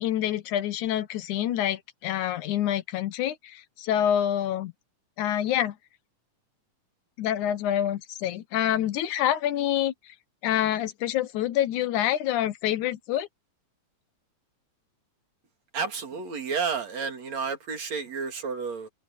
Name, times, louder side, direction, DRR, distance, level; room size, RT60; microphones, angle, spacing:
voice 1, 0.0-4.7 5.2-5.8 7.2-9.9 10.4-13.3, left 11 dB, 80° left, 2.4 m, -27 dB
voice 2, 15.7-18.9, right 5 dB, 60° right, 4.0 m, -31 dB
omnidirectional pair, 3.5 m